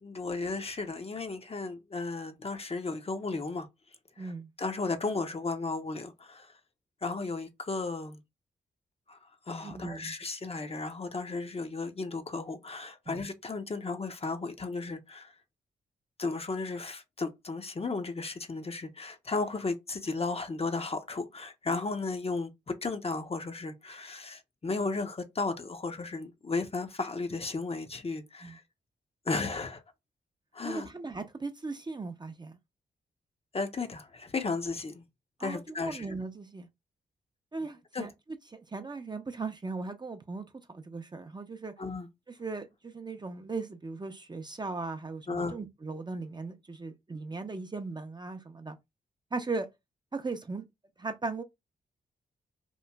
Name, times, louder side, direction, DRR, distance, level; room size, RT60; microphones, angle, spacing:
voice 1, 0.0-3.7 4.2-4.3 4.6-6.5 7.0-8.2 9.1-9.2 9.5-15.3 16.2-28.6 29.3-29.8 30.5-30.9 33.5-35.0 35.4-36.1 37.9-38.1 41.8-42.1 45.3-45.6, left 3 dB, 30° left, 0.6 m, -34 dB
voice 2, 4.2-4.5 9.6-10.1 13.1-13.3 28.4-28.6 30.6-32.6 35.4-36.7 37.5-38.1 38.5-41.7 42.4-48.8 49.3-49.7 50.1-50.6 51.0-51.4, right 3 dB, 25° right, 0.5 m, -38 dB
3.0 x 2.4 x 2.2 m
supercardioid pair, 40°, 19 cm